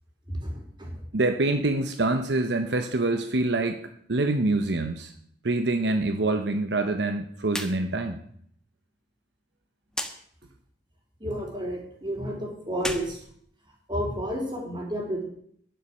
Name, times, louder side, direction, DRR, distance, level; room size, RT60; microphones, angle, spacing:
voice 1, 1.1-3.8 4.1-5.1 5.4-8.2, right 2 dB, 75° right, 7 dB, 1.0 m, -25 dB
sound 1, 7.5-7.8 8.1-8.2 9.9-10.1 12.7-14.0, left 1 dB, 5° left, 1.4 m, -34 dB
voice 2, 11.2-13.2 13.9-15.2, equal, 30° right, -1 dB, 4.5 m, -31 dB
11.0 x 10.5 x 6.4 m, 0.65 s
head